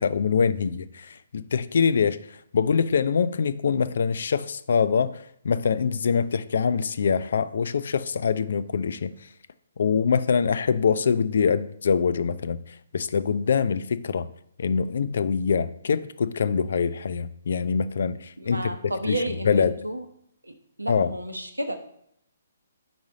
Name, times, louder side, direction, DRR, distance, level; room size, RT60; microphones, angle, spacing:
voice 1, 0.0-2.2 2.5-5.2 5.4-9.1 9.8-12.6 12.9-14.3 14.6-18.7 19.0-19.8 20.9-21.1, left 6 dB, 60° left, 0.4 m, -24 dB
voice 2, 18.4-20.0 20.4-20.5 20.8-21.8, right 1 dB, 90° right, 0.8 m, -31 dB
4.7 x 4.2 x 5.0 m
figure-of-eight pair, 130°, 0 cm